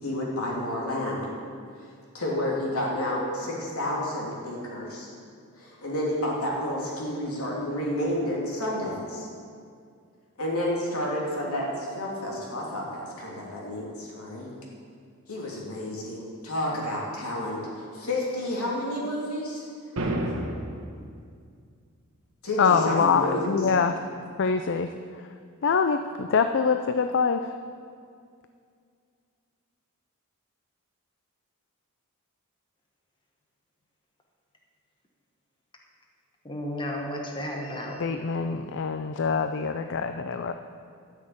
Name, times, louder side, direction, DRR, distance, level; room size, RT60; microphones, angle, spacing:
voice 1, 0.0-1.2 2.1-5.1 5.6-9.3 10.4-14.5 15.3-19.6 22.4-23.6, left 1 dB, 75° left, -3 dB, 3.1 m, -30 dB
sound 1, 20.0-21.0, right 1 dB, 70° right, 1.5 m, -29 dB
voice 2, 22.6-23.9 24.4-24.9 25.6-27.5 38.0-40.5, left 5 dB, 55° left, 8 dB, 0.4 m, -24 dB
voice 3, 36.4-38.0, left 1 dB, 20° left, 0 dB, 1.1 m, -33 dB
12.0 x 6.5 x 8.9 m, 2.2 s
head